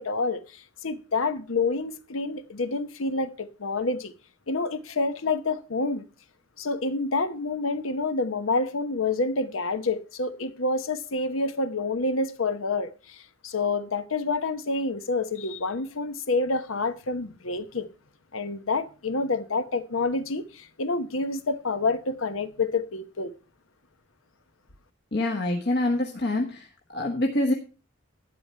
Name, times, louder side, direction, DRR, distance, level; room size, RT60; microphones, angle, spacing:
voice 1, 0.0-4.1 4.5-6.0 6.6-17.9 18.3-23.3, left 3 dB, 90° left, 1.0 m, -28 dB
voice 2, 25.1-26.7 26.9-27.5, left 1 dB, 55° left, 1.4 m, -25 dB
12.0 x 8.9 x 4.3 m
head